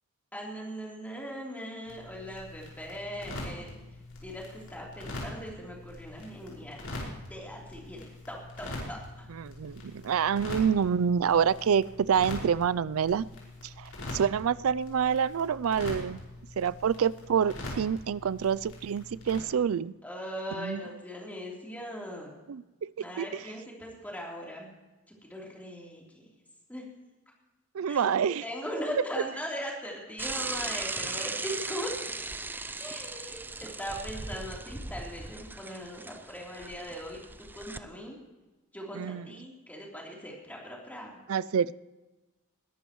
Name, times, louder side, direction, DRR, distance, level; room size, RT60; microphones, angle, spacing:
voice 1, 0.3-3.8 4.2-9.3 20.0-22.3 23.0-24.7 25.2-26.0 26.7-26.8 27.9-31.9 32.8-38.2 38.7-41.2, equal, 10° left, -3 dB, 3.5 m, -40 dB
sound 1, 1.9-19.4, left 1 dB, 90° left, 5.4 m, -43 dB
voice 2, 9.3-13.3 13.6-16.2 16.6-19.9 20.6-20.8 22.5-23.3 27.7-28.4 38.9-39.3 41.3-41.8, right 7 dB, 75° right, 18 dB, 0.4 m, -27 dB
Bicycle / Mechanisms, 30.2-37.8, right 3 dB, 10° right, 0.4 m, -38 dB
21.0 x 12.5 x 3.1 m, 1.1 s
head